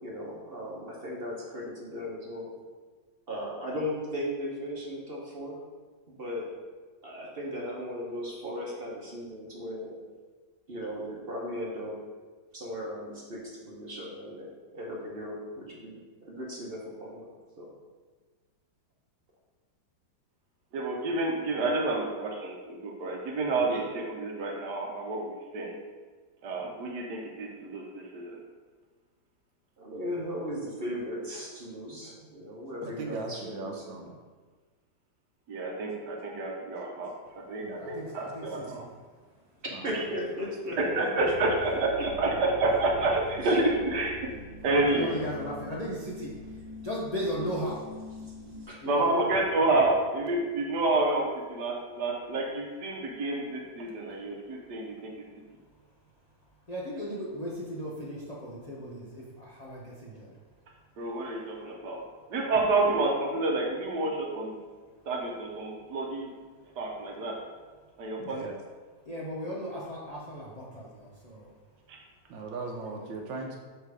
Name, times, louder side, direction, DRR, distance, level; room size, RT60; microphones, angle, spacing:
voice 1, 0.0-2.5 3.3-5.6 6.1-6.5 7.0-9.9 10.7-11.9 12.5-15.9 16.2-17.3 17.6-17.7 23.7-23.8 29.8-33.7 39.8-41.3 42.0-42.1 43.4-43.5 45.0-45.2 48.7-48.8 49.1-49.2, equal, 40° right, -3 dB, 1.0 m, -37 dB
voice 2, 20.7-25.8 26.4-28.4 35.5-38.8 40.8-44.3 44.6-45.1 48.8-55.2 61.0-62.0 62.3-64.6 65.1-66.3 66.8-67.4 68.0-68.5 71.9-72.0, right 2 dB, 65° right, 1 dB, 1.3 m, -29 dB
voice 3, 32.8-34.2 36.6-36.7 37.6-37.9 39.7-39.9 41.0-41.2 68.2-68.6 72.3-73.6, right 3 dB, 85° right, 1 dB, 1.4 m, -38 dB
voice 4, 37.7-38.9 39.3-39.6 44.9-47.9 48.8-49.1 54.1-54.6 56.7-60.4 69.0-71.6 72.8-73.1, equal, 85° left, -5 dB, 0.3 m, -37 dB
sound 1, 41.2-48.7, left 1 dB, 15° right, 2.0 m, -45 dB
6.8 x 3.3 x 4.7 m, 1.4 s
omnidirectional pair, 2.1 m